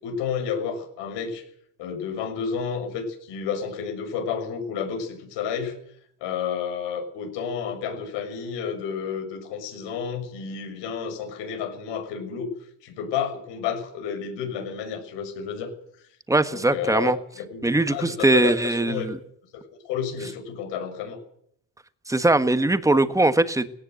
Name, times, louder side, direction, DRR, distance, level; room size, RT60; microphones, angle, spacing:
voice 1, 0.0-1.4 1.8-5.8 6.2-12.5 12.8-15.7 16.5-19.1 19.5-21.2, left 7 dB, 90° left, 5 dB, 6.6 m, -31 dB
voice 2, 16.3-17.2 17.6-19.2 22.1-23.7, right 2 dB, 10° right, 10 dB, 1.5 m, -21 dB
18.5 x 18.0 x 8.1 m, 0.67 s
cardioid pair, 130°, 42 cm